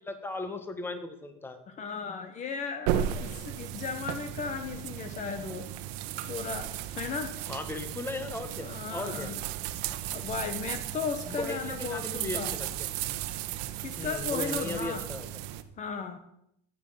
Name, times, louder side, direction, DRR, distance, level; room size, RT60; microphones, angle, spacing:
voice 1, 0.0-1.6 7.5-9.3 11.4-12.9 14.0-15.3, left 2 dB, 10° left, 8 dB, 1.5 m, -37 dB
voice 2, 1.7-5.7 6.3-7.4 8.6-9.4 10.1-12.6 13.8-15.0 15.8-16.2, left 6 dB, 35° left, 8 dB, 1.2 m, -36 dB
sound 1, 2.9-15.6, right 12 dB, 80° right, 1.1 m, -35 dB
14.0 x 9.1 x 5.8 m, 0.75 s
cardioid pair, 130°, 21 cm